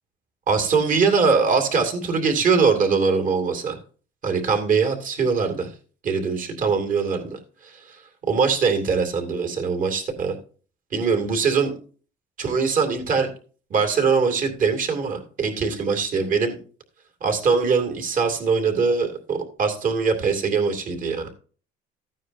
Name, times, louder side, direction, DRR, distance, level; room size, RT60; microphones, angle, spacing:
voice 1, 0.5-3.7 4.2-5.7 6.0-8.0 8.2-10.3 10.9-11.7 12.4-13.3 13.7-16.6 17.2-21.3, right 5 dB, 45° right, 4 dB, 2.7 m, -22 dB
14.0 x 9.4 x 2.7 m, 0.39 s
cardioid pair, 135°, 18 cm